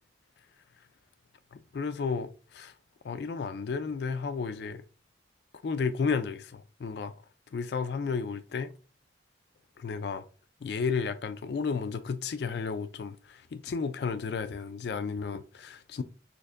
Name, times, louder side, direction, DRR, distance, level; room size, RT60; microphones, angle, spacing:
voice 1, 1.5-2.7 3.0-4.8 5.6-7.1 7.5-8.7 9.8-10.3 10.6-16.0, left 5 dB, 60° left, 0.3 m, -33 dB
6.4 x 2.5 x 2.5 m
head